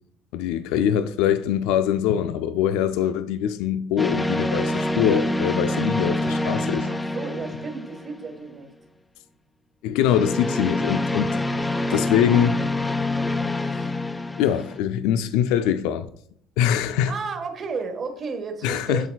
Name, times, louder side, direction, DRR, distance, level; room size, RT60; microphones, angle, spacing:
voice 1, 0.3-6.9 9.8-11.4 11.9-12.6 13.6-13.9 14.4-16.1 16.6-17.1 18.6-19.1, left 10 dB, 80° left, 0.4 m, -23 dB
sound 1, 4.0-8.4 10.0-14.8, left 1 dB, 10° left, 0.3 m, -26 dB
voice 2, 6.8-8.7 11.5-12.4 16.9-19.1, right 4 dB, 35° right, 1.4 m, -33 dB
11.0 x 4.1 x 2.3 m
cardioid pair, 135°, 0 cm